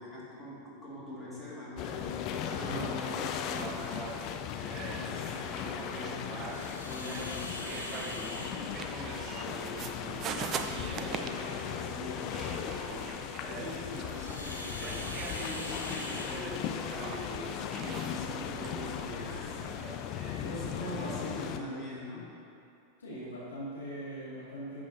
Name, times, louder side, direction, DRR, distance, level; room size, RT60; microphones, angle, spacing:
voice 1, 0.0-13.1 13.4-17.6 17.8-22.3, left 2 dB, ahead, -9 dB, 2.0 m, -43 dB
sound 1, 1.8-21.6, left 9 dB, 40° left, 0.4 m, -38 dB
sound 2, 2.3-20.0, right 6 dB, 30° right, 0.5 m, -43 dB
voice 2, 2.5-2.9 13.5-13.7 20.4-22.1 23.0-24.8, right 1 dB, 70° left, -8 dB, 2.0 m, -41 dB
sound 3, 6.5-20.7, left 1 dB, 90° left, 0.7 m, -46 dB
11.0 x 7.0 x 2.7 m, 2.5 s
figure-of-eight pair, 90°, 0 cm